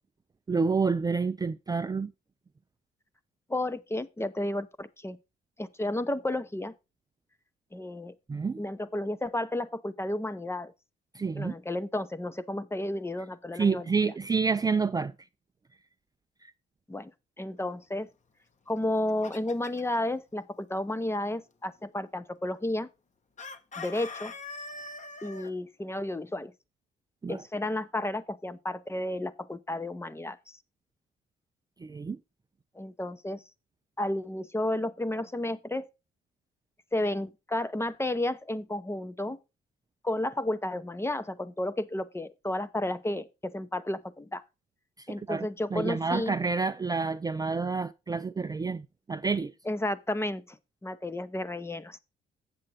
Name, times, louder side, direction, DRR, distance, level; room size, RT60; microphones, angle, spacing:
voice 1, 0.5-2.1 8.3-8.6 11.1-11.6 13.5-15.1 27.2-27.4 31.8-32.2 45.0-49.5, right 4 dB, 20° right, 0.4 m, -29 dB
voice 2, 3.5-5.2 5.6-6.7 7.7-8.1 8.6-10.7 11.4-14.1 16.9-17.1 17.4-18.1 18.7-22.9 23.8-24.3 25.2-26.5 27.3-30.6 32.7-33.4 34.0-35.9 36.9-39.4 40.0-44.4 45.1-46.4 49.6-52.0, left 1 dB, 10° left, 0.8 m, -32 dB
Chicken rooster, 18.8-20.0 23.4-25.5, left 3 dB, 40° left, 1.1 m, -42 dB
7.8 x 7.5 x 4.1 m
cardioid pair, 90°, 20 cm